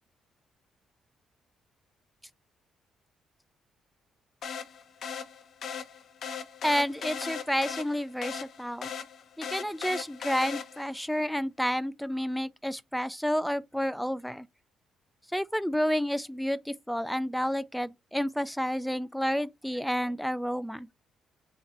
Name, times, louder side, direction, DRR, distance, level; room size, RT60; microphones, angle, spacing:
sound 1, 4.4-11.0, left 7 dB, 65° left, 0.7 m, -39 dB
voice 1, 6.6-8.9 9.4-14.5 15.3-20.9, equal, ahead, 0.4 m, -30 dB
3.9 x 2.5 x 4.3 m
cardioid pair, 90°, 0 cm